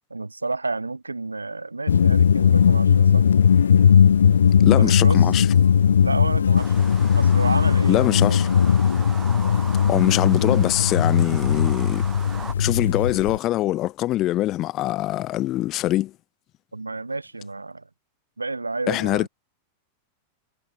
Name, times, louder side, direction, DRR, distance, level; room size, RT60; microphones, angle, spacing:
voice 1, 0.1-3.3 4.8-5.3 6.0-6.7 7.1-8.6 16.7-17.9 18.4-19.3, right 3 dB, 80° right, 0.9 m, -31 dB
sound 1, 1.9-13.4, left 7 dB, 70° left, 0.3 m, -18 dB
voice 2, 4.6-5.5 7.9-8.5 9.9-12.0 12.6-16.1 18.9-19.3, left 15 dB, 35° left, 0.6 m, -23 dB
sound 2, 6.6-12.5, right 5 dB, 15° right, 3.6 m, -39 dB
figure-of-eight pair, 90°, 0 cm